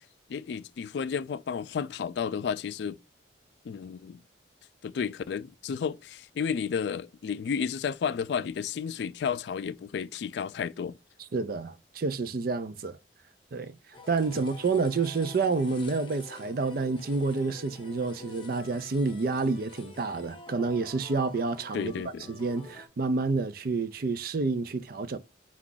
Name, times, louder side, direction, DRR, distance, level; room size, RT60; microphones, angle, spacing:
voice 1, 0.3-3.0 3.6-4.2 4.8-11.0 14.3-14.4 21.7-22.3, left 6 dB, 65° left, 0.3 m, -32 dB
voice 2, 11.3-13.0 13.5-13.7 14.1-21.9 22.3-25.2, right 4 dB, 50° right, 0.4 m, -29 dB
sound 1, 13.9-22.9, left 3 dB, 25° left, 0.8 m, -48 dB
4.6 x 2.4 x 3.8 m
head